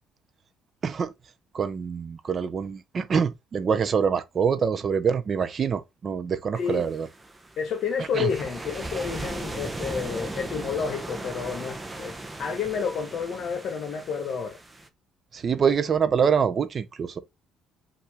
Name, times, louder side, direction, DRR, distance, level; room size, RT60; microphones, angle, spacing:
voice 1, 0.8-1.1 1.5-7.1 8.1-8.3 15.3-17.2, right 6 dB, 40° right, 0.7 m, -25 dB
voice 2, 6.5-6.8 7.6-14.6, left 6 dB, 55° left, 1.3 m, -30 dB
sound 1, 6.6-14.9, right 2 dB, 15° right, 0.8 m, -38 dB
5.4 x 2.7 x 3.5 m
cardioid pair, 100°, 0 cm